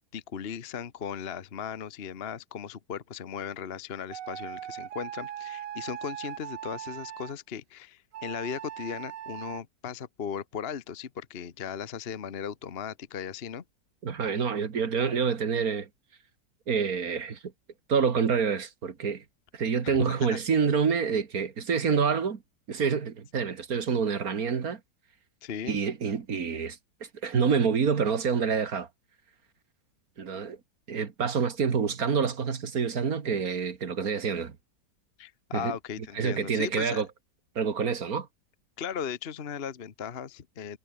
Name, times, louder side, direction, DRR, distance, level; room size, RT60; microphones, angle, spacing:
voice 1, 0.1-13.6 19.8-20.4 25.4-25.8 35.2-37.0 38.8-40.8, left 7 dB, 40° left, 1.2 m, -37 dB
sound 1, 4.1-7.3 8.1-9.6, right 11 dB, 80° right, 1.6 m, -39 dB
voice 2, 14.0-15.9 16.7-17.4 17.9-19.2 19.5-22.4 22.7-24.8 25.6-28.9 30.2-30.6 30.9-34.6 35.5-35.7 36.2-37.1 37.6-38.3, right 6 dB, 55° right, 2.2 m, -27 dB
omnidirectional pair, 1.9 m